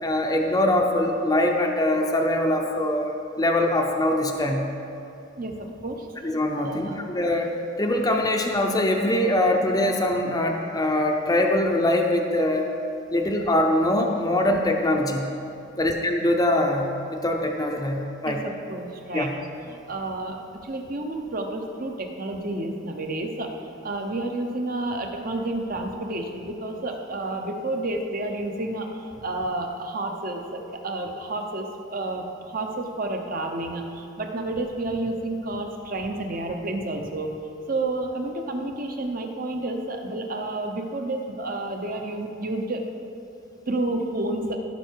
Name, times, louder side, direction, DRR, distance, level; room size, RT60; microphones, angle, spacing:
voice 1, 0.0-4.6 6.2-12.7 13.1-15.3 15.8-18.4 19.1-19.3, left 1 dB, 20° left, 2 dB, 0.6 m, -23 dB
voice 2, 5.4-6.1 6.6-7.0 18.2-19.3 19.7-37.4 37.7-42.9 43.7-44.6, right 2 dB, 40° right, 3 dB, 0.9 m, -30 dB
16.0 x 5.8 x 4.6 m, 2.7 s
head